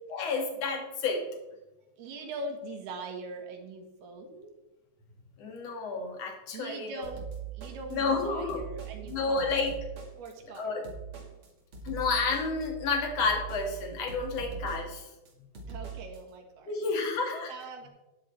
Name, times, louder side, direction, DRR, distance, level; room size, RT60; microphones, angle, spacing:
voice 1, 0.1-1.2 5.4-7.1 7.9-8.6 9.1-9.7 10.5-10.8 11.8-15.1 16.7-17.5, left 4 dB, 45° left, 1 dB, 3.0 m, -30 dB
voice 2, 2.0-4.5 6.5-7.3 7.5-9.6 10.2-10.7 15.7-16.8 17.5-17.9, right 2 dB, 70° right, 2 dB, 3.5 m, -42 dB
sound 1, 7.0-16.2, right 7 dB, 40° right, 2.2 m, -42 dB
12.5 x 11.0 x 3.5 m, 1.0 s
omnidirectional pair, 4.9 m